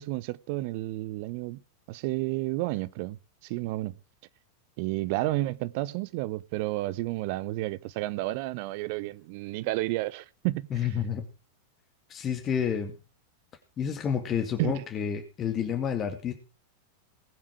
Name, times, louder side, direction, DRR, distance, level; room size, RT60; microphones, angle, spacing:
voice 1, 0.0-1.6 1.9-3.2 3.4-4.0 4.8-10.9 14.6-14.8, right 18 dB, 45° right, 0.8 m, -31 dB
voice 2, 10.7-11.2 12.1-13.0 13.8-16.3, left 8 dB, 25° left, 2.2 m, -29 dB
20.0 x 7.4 x 4.9 m
figure-of-eight pair, 90°, 0 cm